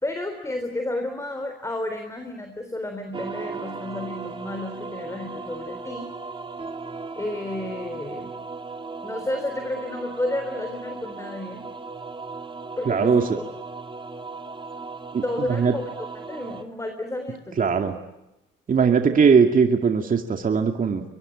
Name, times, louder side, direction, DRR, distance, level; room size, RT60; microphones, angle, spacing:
voice 1, 0.0-6.1 7.2-8.3 9.0-11.6 12.8-13.3 15.2-15.9 16.3-17.9, left 1 dB, 15° left, 6 dB, 3.7 m, -31 dB
sound 1, 3.1-16.6, right 4 dB, 25° right, 2.7 m, -37 dB
voice 2, 12.9-13.2 15.1-15.7 17.6-17.9 18.7-21.0, right 6 dB, 45° right, 5 dB, 2.3 m, -20 dB
24.0 x 22.5 x 10.0 m, 0.91 s
cardioid pair, 90°, 20 cm